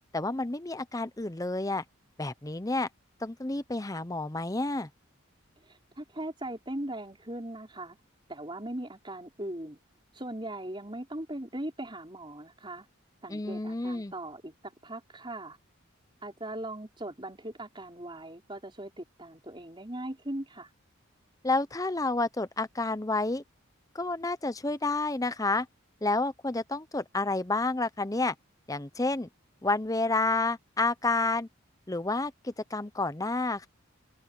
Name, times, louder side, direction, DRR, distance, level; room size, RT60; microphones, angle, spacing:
voice 1, 0.1-1.8 2.2-2.9 3.2-4.9 13.3-14.1 21.4-23.4 23.9-25.7 26.0-28.3 28.7-29.3 29.6-31.5 31.9-33.7, left 2 dB, 15° left, 0.7 m, -30 dB
voice 2, 5.6-8.0 8.3-9.8 10.1-12.9 13.2-15.6 16.2-20.7, right 1 dB, 25° right, 4.8 m, -39 dB
open air
head